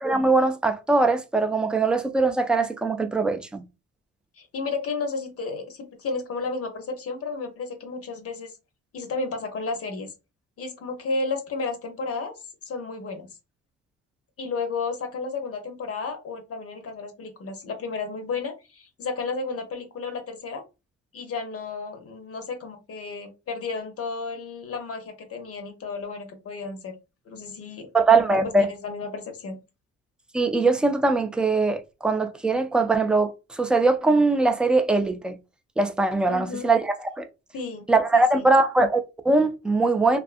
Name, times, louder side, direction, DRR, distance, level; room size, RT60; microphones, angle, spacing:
voice 1, 0.0-3.6 27.9-28.7 30.3-35.4 35.8-37.2 37.9-40.2, right 3 dB, 5° right, 0.3 m, -21 dB
voice 2, 4.4-8.5 8.9-10.1 10.6-12.4 12.6-13.3 14.4-20.6 21.1-26.9 27.3-27.9 28.3-29.6 36.3-36.7 37.5-37.9 38.1-38.5, left 4 dB, 50° left, 0.7 m, -32 dB
2.5 x 2.4 x 2.4 m
cardioid pair, 90°, 30 cm